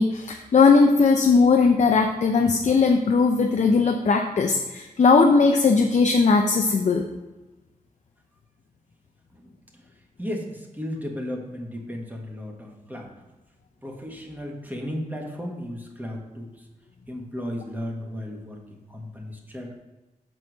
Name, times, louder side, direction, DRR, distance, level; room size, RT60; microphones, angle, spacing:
voice 1, 0.0-7.0, left 4 dB, 50° left, 3 dB, 0.6 m, -19 dB
voice 2, 9.3-9.9 10.2-13.2 13.8-16.6 17.1-19.7, equal, 10° right, 0 dB, 1.4 m, -35 dB
6.2 x 4.4 x 6.2 m, 1.1 s
wide cardioid pair, 90°, 15 cm